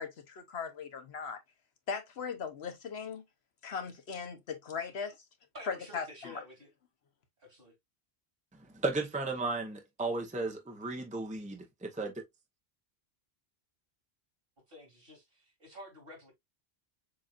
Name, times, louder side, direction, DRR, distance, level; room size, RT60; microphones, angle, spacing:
voice 1, 0.0-1.4 1.9-3.2 3.6-5.2 5.7-6.4, left 6 dB, 80° left, 1.2 m, -38 dB
voice 2, 5.5-6.7 7.4-7.7 14.7-16.3, left 1 dB, 60° right, 3.2 m, -50 dB
voice 3, 8.6-12.1, right 3 dB, 10° right, 0.8 m, -35 dB
6.9 x 2.7 x 2.4 m
omnidirectional pair, 1.1 m